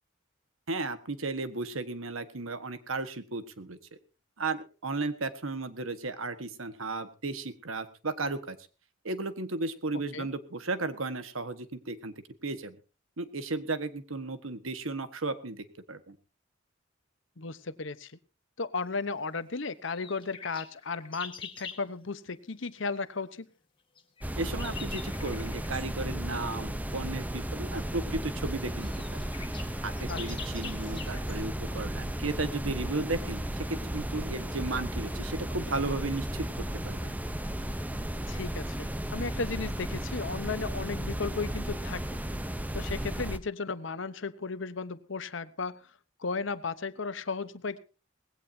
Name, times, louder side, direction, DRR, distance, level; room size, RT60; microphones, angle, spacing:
voice 1, 0.7-3.8 4.4-8.6 9.0-12.1 12.4-12.8 13.2-16.2 24.4-29.2 29.8-37.1, right 3 dB, 90° right, 10 dB, 1.5 m, -35 dB
voice 2, 17.4-18.1 18.6-23.5 30.1-30.2 38.3-42.2 42.7-45.8 46.2-47.8, left 4 dB, 65° left, 13 dB, 1.0 m, -35 dB
sound 1, 19.9-21.8 24.0-25.9 27.7-27.8 28.4-28.5 28.7-31.4, left 6 dB, 25° left, 2.1 m, -45 dB
sound 2, 24.2-43.4, right 1 dB, 10° right, 0.7 m, -34 dB
19.5 x 16.5 x 2.8 m, 0.33 s
head